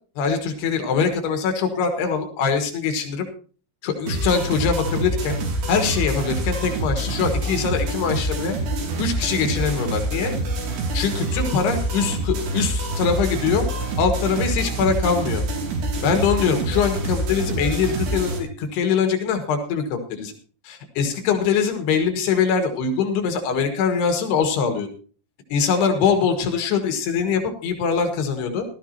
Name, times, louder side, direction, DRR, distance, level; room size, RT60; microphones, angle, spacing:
voice 1, 0.2-3.3 3.8-5.4 5.7-8.6 9.0-10.3 10.9-13.7 14.0-15.4 16.0-20.3 20.7-24.9 25.5-28.7, left 6 dB, 90° left, 5 dB, 3.7 m, -23 dB
sound 1, 4.1-18.4, right 1 dB, 90° right, 4.6 m, -26 dB
16.5 x 13.0 x 2.9 m, 0.40 s
omnidirectional pair, 4.6 m